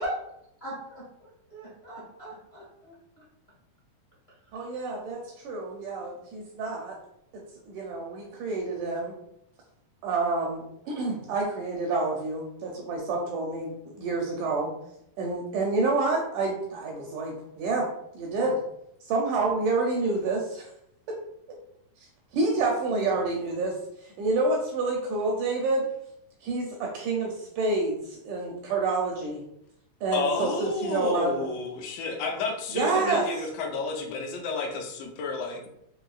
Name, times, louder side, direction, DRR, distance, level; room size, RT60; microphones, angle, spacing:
voice 1, 0.6-3.2, equal, 55° left, -8 dB, 0.7 m, -38 dB
voice 2, 4.5-7.0 7.7-9.1 10.0-14.7 15.2-17.9 18.1-18.6 19.1-20.6 21.1-21.2 22.0-22.1 22.3-23.8 24.0-25.9 26.4-29.4 30.0-31.3 32.7-33.2, right 3 dB, 80° right, 0 dB, 1.8 m, -28 dB
voice 3, 30.1-35.7, left 4 dB, 80° left, 1 dB, 2.2 m, -31 dB
5.4 x 2.8 x 2.3 m, 0.77 s
omnidirectional pair, 4.0 m